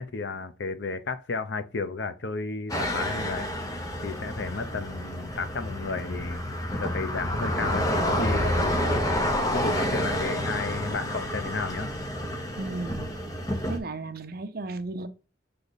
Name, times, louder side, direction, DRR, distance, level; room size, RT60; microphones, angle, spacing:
voice 1, 0.0-3.5 4.0-6.4 6.8-8.8 9.5-11.9, left 4 dB, 70° left, 0.6 m, -33 dB
sound 1, 2.7-13.8, equal, 20° left, 1.0 m, -29 dB
voice 2, 12.6-13.1 13.7-15.1, right 2 dB, 55° right, 0.7 m, -34 dB
7.0 x 3.3 x 4.0 m
head